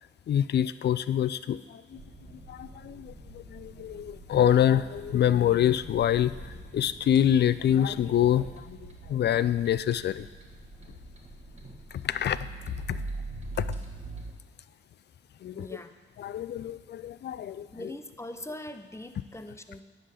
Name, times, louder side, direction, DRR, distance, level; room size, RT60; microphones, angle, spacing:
voice 1, 0.3-2.0 2.5-10.3 11.9-13.0 13.6-13.7 15.4-15.8 16.2-17.9, left 10 dB, 55° left, 15 dB, 0.4 m, -26 dB
sound 1, 1.9-14.3, right 2 dB, 35° right, 1.5 m, -43 dB
voice 2, 15.5-15.9 17.7-19.8, left 1 dB, 15° left, 8 dB, 0.7 m, -41 dB
9.8 x 3.9 x 6.7 m, 1.4 s
cardioid pair, 65°, 21 cm